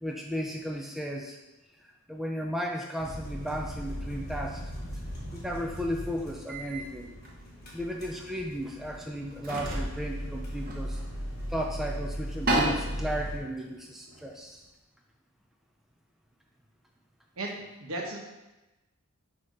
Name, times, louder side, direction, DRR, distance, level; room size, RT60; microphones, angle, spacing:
voice 1, 0.0-1.4 1.8-4.7 5.3-7.1 7.7-11.0 11.5-14.7, equal, ahead, 0 dB, 0.3 m, -35 dB
sound 1, 3.0-13.4, equal, 45° left, 1.6 m, -38 dB
sound 2, 5.1-5.3 6.5-6.8 7.2-7.4 8.6-8.7 9.3-11.5 11.9-12.0 12.2-14.7, right 1 dB, 40° right, 0.9 m, -33 dB
voice 2, 17.4-18.2, right 2 dB, 75° right, 0 dB, 1.1 m, -36 dB
6.5 x 2.9 x 5.1 m, 1.0 s
head